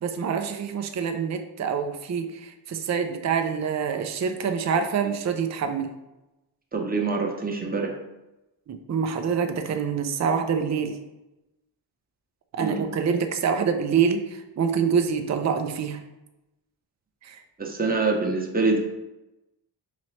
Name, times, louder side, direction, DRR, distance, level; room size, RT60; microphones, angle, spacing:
voice 1, 0.0-5.9 8.7-11.0 12.6-16.0 17.2-17.4, right 6 dB, 35° right, 6 dB, 0.5 m, -26 dB
voice 2, 6.7-7.9 12.6-12.8 17.6-18.8, right 3 dB, 20° right, 1 dB, 0.9 m, -25 dB
3.9 x 3.0 x 3.2 m, 0.98 s
cardioid pair, 50°, 47 cm